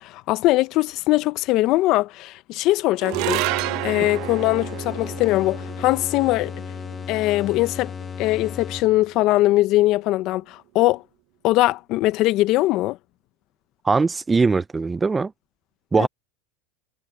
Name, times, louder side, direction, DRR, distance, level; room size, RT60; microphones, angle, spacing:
voice 1, 0.0-6.5 7.1-7.9 8.2-11.0 11.4-13.0 16.0-16.1, left 18 dB, 55° left, 1.1 m, -21 dB
sound 1, 3.0-9.5, right 23 dB, 60° right, 0.8 m, -31 dB
sound 2, 3.1-9.2, left 6 dB, 25° left, 1.5 m, -35 dB
voice 2, 13.8-15.3 15.9-16.1, right 4 dB, 15° right, 0.6 m, -20 dB
hypercardioid pair, 105°, 0 cm